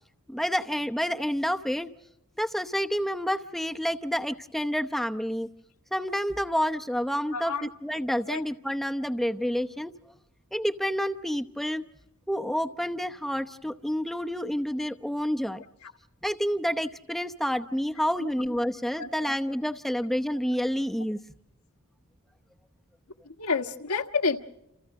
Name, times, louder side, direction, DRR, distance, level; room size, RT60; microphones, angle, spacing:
voice 1, 0.3-1.9 2.4-5.5 5.9-9.9 10.5-11.8 12.3-15.6 16.2-21.2, equal, ahead, 0.8 m, -29 dB
voice 2, 7.3-7.7 8.3-8.4 15.8-15.9 18.2-18.3 19.0-19.1 23.2-24.4, left 4 dB, 80° left, 1.6 m, -29 dB
29.0 x 28.5 x 3.7 m
head